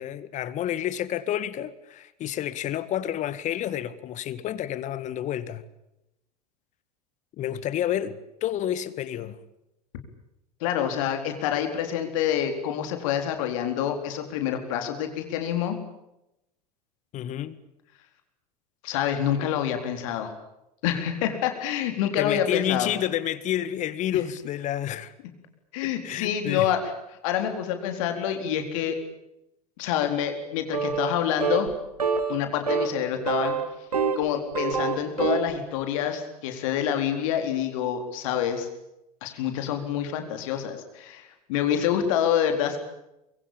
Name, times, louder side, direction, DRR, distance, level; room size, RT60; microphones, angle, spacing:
voice 1, 0.0-5.6 7.4-9.4 17.1-17.6 19.4-19.5 22.2-25.1 25.8-26.7, left 11 dB, 40° left, 1.8 m, -30 dB
voice 2, 10.6-15.8 18.8-20.3 20.8-22.9 25.7-26.8 27.2-29.0 29.8-31.7 32.3-33.6 34.2-38.7 39.2-42.8, left 9 dB, 55° left, 4.1 m, -27 dB
sound 1, 30.7-31.2 31.4-31.7 32.0-32.4 32.7-32.9 33.3-34.2 34.5-35.5, right 5 dB, 75° right, 2.6 m, -26 dB
25.0 x 23.0 x 8.8 m
figure-of-eight pair, 75°, 20 cm